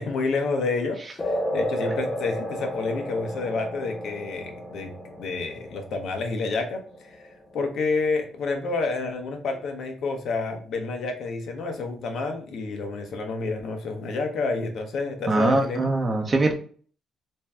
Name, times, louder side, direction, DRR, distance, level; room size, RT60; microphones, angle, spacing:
voice 1, 0.0-4.9 5.2-15.9, left 3 dB, 70° left, 4 dB, 0.7 m, -29 dB
sound 1, 1.2-8.2, equal, 30° left, 0.6 m, -33 dB
voice 2, 15.3-16.5, right 2 dB, 35° right, 3 dB, 0.7 m, -22 dB
2.6 x 2.2 x 3.3 m, 0.43 s
cardioid pair, 90°, 0 cm